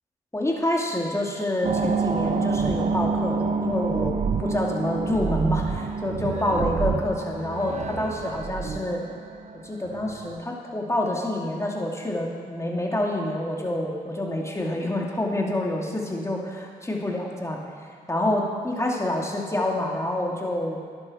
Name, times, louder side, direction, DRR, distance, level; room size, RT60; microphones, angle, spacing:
voice 1, 0.3-9.0 9.6-17.6 18.1-20.8, left 1 dB, 15° left, -1 dB, 2.4 m, -27 dB
sound 1, 1.6-10.4, right 4 dB, 45° right, 0.7 m, -27 dB
11.0 x 11.0 x 4.3 m, 2.1 s
hypercardioid pair, 45°, 17 cm